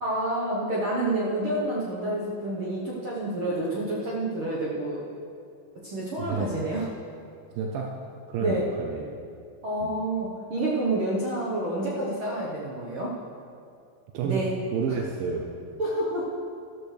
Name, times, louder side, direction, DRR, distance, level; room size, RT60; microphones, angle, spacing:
voice 1, 0.0-5.0 5.8-6.9 8.4-8.7 9.6-13.1 14.2-14.5 15.8-16.2, right 1 dB, 60° right, -5 dB, 1.4 m, -28 dB
voice 2, 6.2-6.6 7.5-8.0 8.3-9.2 9.8-10.0 14.1-14.5 14.7-15.5, right 5 dB, 85° right, 1 dB, 2.5 m, -30 dB
13.5 x 13.0 x 3.3 m, 2.5 s
omnidirectional pair, 4.0 m